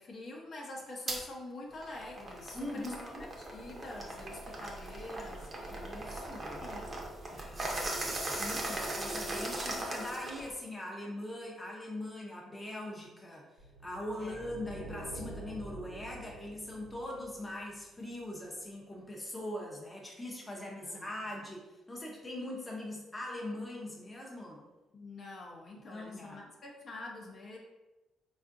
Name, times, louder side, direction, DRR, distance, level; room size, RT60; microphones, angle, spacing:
voice 1, 0.0-5.9 6.6-8.1 8.5-8.9 14.2-14.5 20.8-21.1 24.9-27.6, left 2 dB, 50° left, -2 dB, 0.7 m, -47 dB
sound 1, 1.1-1.2 1.7-10.5, right 1 dB, 35° right, 0.7 m, -38 dB
voice 2, 2.5-3.3 5.7-6.6 7.5-7.9 8.4-13.5 13.8-24.6 25.9-26.5, left 1 dB, 15° left, -2 dB, 0.6 m, -41 dB
sound 2, 13.6-18.0, right 1 dB, 90° right, 0.7 m, -47 dB
3.6 x 2.4 x 2.5 m, 1.1 s
cardioid pair, 90°, 0 cm